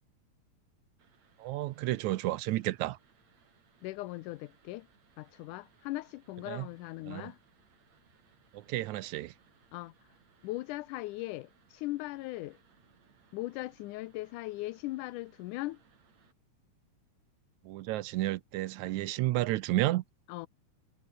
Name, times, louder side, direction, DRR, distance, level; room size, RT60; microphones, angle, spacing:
sound 1, 1.0-16.3, right 6 dB, 60° right, 4.6 m, -67 dB
voice 1, 1.4-3.0 6.5-6.7 7.1-7.3 8.5-9.3 17.6-20.0, right 17 dB, 75° right, 2.0 m, -31 dB
voice 2, 3.8-4.9 5.2-7.4 9.7-9.9 10.4-12.6 13.3-15.8 20.3-20.5, left 18 dB, 90° left, 2.2 m, -39 dB
omnidirectional pair, 3.5 m